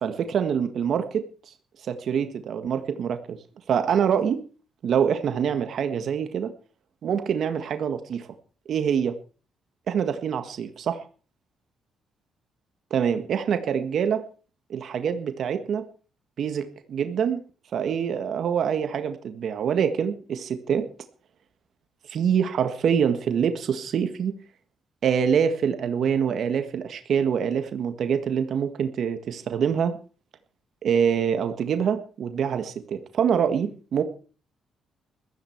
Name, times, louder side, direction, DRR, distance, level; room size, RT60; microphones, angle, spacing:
voice 1, 0.0-1.3 1.8-3.4 3.7-4.4 4.8-6.5 7.0-8.3 8.7-9.2 9.9-11.0 12.9-14.2 14.7-15.8 16.4-17.4 17.7-20.9 22.1-24.4 25.0-30.0 30.8-34.0, right 7 dB, 60° right, 8 dB, 1.7 m, -25 dB
15.0 x 14.0 x 4.6 m, 0.38 s
cardioid pair, 90°, 0 cm